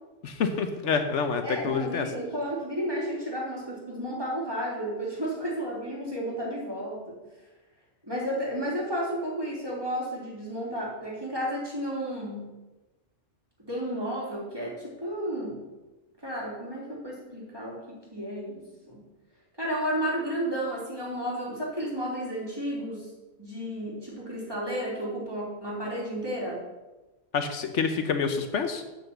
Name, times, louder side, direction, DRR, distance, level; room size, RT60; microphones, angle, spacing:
voice 1, 0.2-2.1 27.3-28.8, left 5 dB, 70° left, 7 dB, 1.1 m, -27 dB
voice 2, 1.4-7.2 8.0-12.4 13.7-15.6 16.2-19.0 19.6-23.1 23.4-26.6, equal, 20° right, -5 dB, 3.2 m, -32 dB
8.2 x 6.6 x 7.1 m, 1.1 s
omnidirectional pair, 1.3 m